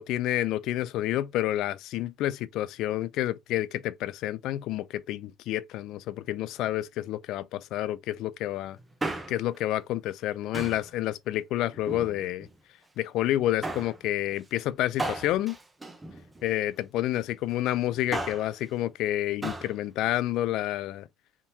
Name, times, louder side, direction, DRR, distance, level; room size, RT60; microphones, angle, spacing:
voice 1, 0.0-8.8 9.3-12.5 13.0-15.6 16.4-21.1, left 14 dB, 65° left, 0.3 m, -29 dB
Male speech man speaking, 8.8-9.6 10.5-10.9 11.7-12.5 13.6-14.0 15.0-16.6 17.9-18.5 19.4-19.7 20.0-20.1, right 2 dB, 15° right, 0.8 m, -35 dB
3.6 x 2.7 x 2.7 m
supercardioid pair, 90°, 0 cm